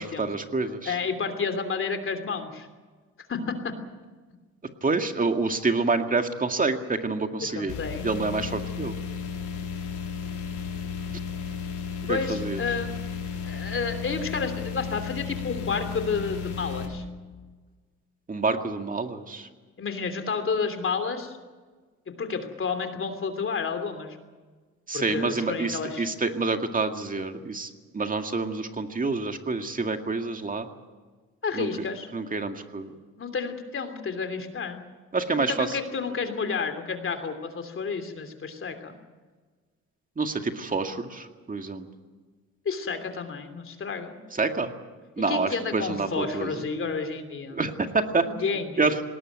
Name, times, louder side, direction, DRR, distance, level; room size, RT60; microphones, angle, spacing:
voice 1, 0.0-1.0 4.8-7.7 8.0-9.0 12.1-12.6 18.3-19.5 24.9-30.7 31.5-31.9 32.1-32.9 35.1-35.8 40.2-41.9 44.3-44.7 45.2-46.6 47.5-48.2 48.8-49.0, right 3 dB, 25° right, 6 dB, 2.1 m, -27 dB
voice 2, 0.8-2.7 3.3-3.7 7.4-8.0 12.1-12.9 13.4-17.0 19.8-21.4 22.1-24.2 24.9-26.1 31.4-32.1 33.2-34.8 35.5-39.0 42.6-44.2 45.3-47.6 48.2-48.8, left 5 dB, 45° left, 8 dB, 3.1 m, -30 dB
sound 1, 7.7-16.9, left 6 dB, 75° left, 4.5 m, -34 dB
19.5 x 18.5 x 9.4 m, 1.4 s
cardioid pair, 90°, 30 cm